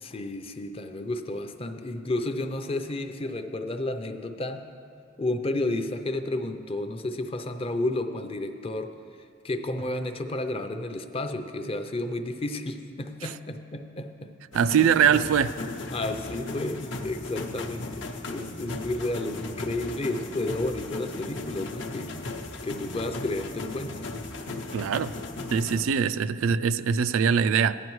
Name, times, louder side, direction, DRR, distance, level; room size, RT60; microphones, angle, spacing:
voice 1, 0.0-4.7 5.2-8.9 9.4-14.3 14.7-14.8 15.9-22.2 22.6-24.1, left 2 dB, 30° left, 7 dB, 0.5 m, -31 dB
sound 1, 14.5-25.8, left 2 dB, 65° left, 0.7 m, -36 dB
voice 2, 14.5-15.5 24.7-25.1 25.5-27.8, right 7 dB, 90° right, 13 dB, 0.3 m, -22 dB
15.5 x 10.5 x 3.1 m, 2.2 s
head